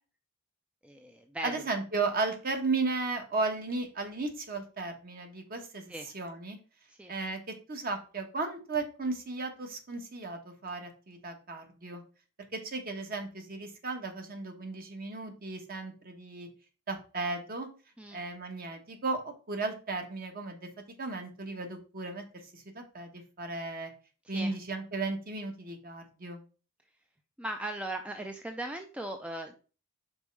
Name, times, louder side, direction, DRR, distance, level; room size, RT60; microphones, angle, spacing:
voice 1, 0.8-1.5 5.9-6.1 6.9-7.1 18.0-18.2 24.3-24.6 27.4-29.6, right 1 dB, 5° right, 5 dB, 0.4 m, -38 dB
voice 2, 1.4-6.6 7.1-12.0 12.5-16.5 16.9-17.7 18.1-20.7 21.0-23.9 24.3-26.4, right 3 dB, 40° right, 5 dB, 1.2 m, -35 dB
5.3 x 4.2 x 4.6 m, 0.35 s
head